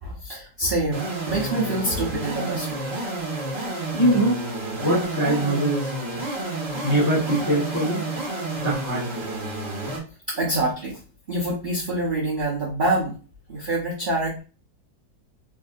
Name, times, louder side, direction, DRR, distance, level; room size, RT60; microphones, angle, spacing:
voice 1, 0.0-2.9 10.3-11.0 11.3-13.1 13.5-14.4, right 2 dB, 70° right, -6 dB, 0.4 m, -26 dB
sound 1, 0.9-10.0, right 2 dB, 45° right, 1.1 m, -30 dB
voice 2, 3.9-4.5 4.7-5.9 6.8-8.0 8.6-9.3, right 1 dB, 15° left, -4 dB, 0.8 m, -22 dB
3.6 x 2.6 x 2.4 m, 0.35 s
omnidirectional pair, 2.0 m